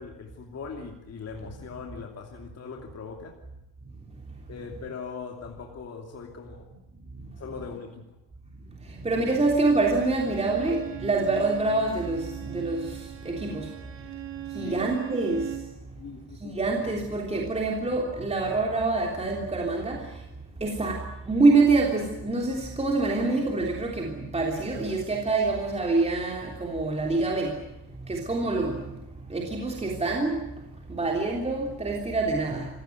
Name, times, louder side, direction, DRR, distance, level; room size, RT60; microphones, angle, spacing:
voice 1, 0.0-3.3 4.5-6.7 7.4-8.0 14.5-14.7 16.0-16.6 31.0-31.1, left 5 dB, 35° left, 2 dB, 2.9 m, -40 dB
voice 2, 9.0-13.0 13.2-13.7 14.5-15.5 16.4-20.0 20.6-27.5 28.1-28.8 29.3-30.4 30.9-32.7, right 3 dB, 15° right, 0 dB, 3.3 m, -26 dB
Bowed string instrument, 9.6-15.7, right 13 dB, 90° right, 4.0 m, -39 dB
27.5 x 17.0 x 9.3 m, 0.91 s
cardioid pair, 160°, 42 cm